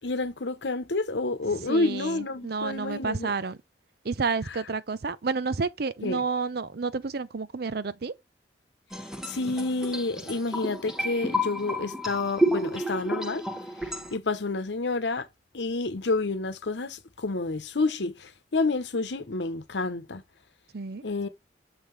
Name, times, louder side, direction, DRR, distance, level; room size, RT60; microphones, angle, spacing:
voice 1, 0.0-3.3 6.0-6.2 9.2-13.4 13.8-15.3 15.5-20.2 21.0-21.3, left 3 dB, 85° left, 1.0 m, -29 dB
voice 2, 1.5-3.6 4.0-8.1 20.7-21.0, right 4 dB, 60° right, 0.6 m, -30 dB
sound 1, 8.9-14.2, equal, 5° right, 1.0 m, -30 dB
6.5 x 5.7 x 3.2 m
head